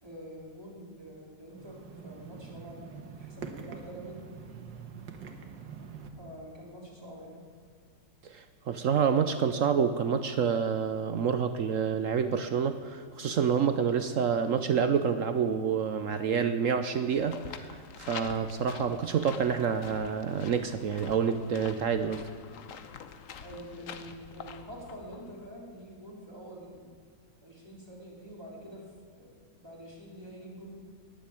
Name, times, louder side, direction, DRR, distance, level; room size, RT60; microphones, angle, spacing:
voice 1, 0.0-4.2 6.1-7.4 23.4-26.9 27.4-28.8 29.2-30.7, right 1 dB, 15° right, -4 dB, 3.3 m, -46 dB
sound 1, 1.5-6.1, right 5 dB, 80° right, 2.0 m, -45 dB
voice 2, 8.2-22.2, right 7 dB, 60° right, 9 dB, 0.9 m, -28 dB
sound 2, 17.1-25.5, left 7 dB, 55° left, 1.1 m, -46 dB
19.5 x 7.7 x 8.7 m, 2.1 s
omnidirectional pair, 1.9 m